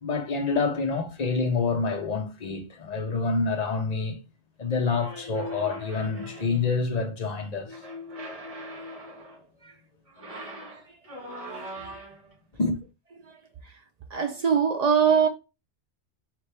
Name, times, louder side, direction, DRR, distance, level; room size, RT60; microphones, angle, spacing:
voice 1, 0.0-4.2 4.6-7.8 12.6-12.8, left 4 dB, 40° left, 0.8 m, -27 dB
sound 1, 4.8-6.7 7.7-9.5 10.1-12.3, equal, 30° right, 1.6 m, -40 dB
voice 2, 10.3-10.8 11.6-11.9 13.3-13.4 13.6-13.7 14.1-15.3, right 7 dB, 55° right, 0.4 m, -24 dB
4.1 x 3.1 x 3.3 m
omnidirectional pair, 1.1 m